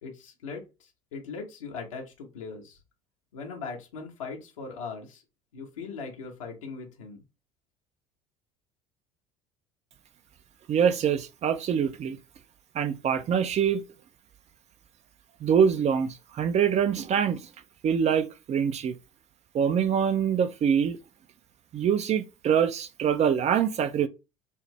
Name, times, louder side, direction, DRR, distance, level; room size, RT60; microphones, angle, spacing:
voice 1, 0.0-2.8 3.3-5.2 5.5-7.2, left 4 dB, 90° left, 1.3 m, -39 dB
voice 2, 10.7-12.2 12.7-13.8 15.4-17.4 17.8-19.0 19.5-21.0 21.7-24.1, right 8 dB, 45° right, 0.6 m, -24 dB
5.5 x 2.0 x 3.3 m
hypercardioid pair, 75°, 16 cm